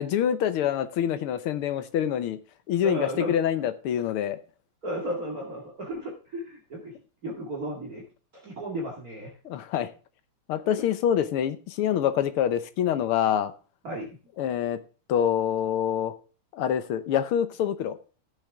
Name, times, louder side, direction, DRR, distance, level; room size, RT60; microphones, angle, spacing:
voice 1, 0.0-2.4 2.7-4.4 9.5-9.9 10.5-13.5 14.4-14.8 15.1-16.1 16.5-18.0, left 9 dB, 80° left, 12 dB, 1.8 m, -26 dB
voice 2, 2.8-3.4 4.8-6.9 7.2-8.0 8.3-9.3 13.8-14.1, right 1 dB, 40° right, -2 dB, 2.6 m, -34 dB
15.0 x 7.1 x 3.6 m, 0.37 s
omnidirectional pair, 2.4 m